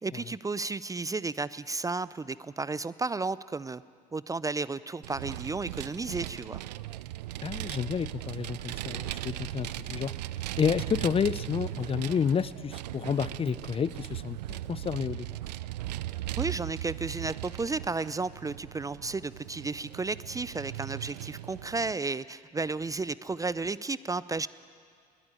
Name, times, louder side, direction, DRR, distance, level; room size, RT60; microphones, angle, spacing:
voice 1, 0.0-3.8 4.1-6.6 16.4-24.5, right 3 dB, 15° right, 18 dB, 0.5 m, -33 dB
Vehicle, 5.0-21.9, right 15 dB, 75° right, 0.6 m, -38 dB
voice 2, 7.4-10.1 10.6-15.3, left 7 dB, 25° left, 18 dB, 0.6 m, -30 dB
21.5 x 18.0 x 9.9 m, 2.1 s
hypercardioid pair, 65°, 21 cm